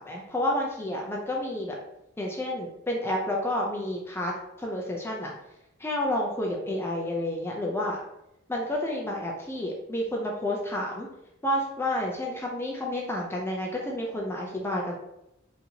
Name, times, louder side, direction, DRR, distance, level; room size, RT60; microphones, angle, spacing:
voice 1, 0.0-1.8 2.2-4.3 4.6-5.3 5.8-8.0 8.5-11.1 11.4-14.9, left 1 dB, 10° left, -1 dB, 0.4 m, -30 dB
4.1 x 2.7 x 2.7 m, 0.87 s
head